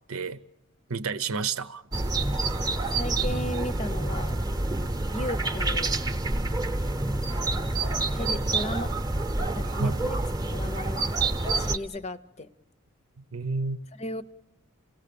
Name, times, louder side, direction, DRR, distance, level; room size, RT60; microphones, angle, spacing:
voice 1, 0.1-0.4 0.9-1.8 9.6-10.0 13.2-13.8, right 4 dB, 85° right, 0.8 m, -30 dB
sound 1, 1.9-11.8, right 2 dB, 20° right, 0.8 m, -28 dB
voice 2, 2.9-4.4 5.1-6.0 7.5-7.9 8.1-8.9 9.5-11.1 11.6-12.5 13.9-14.2, left 1 dB, 30° left, 0.7 m, -35 dB
28.0 x 17.0 x 6.9 m
head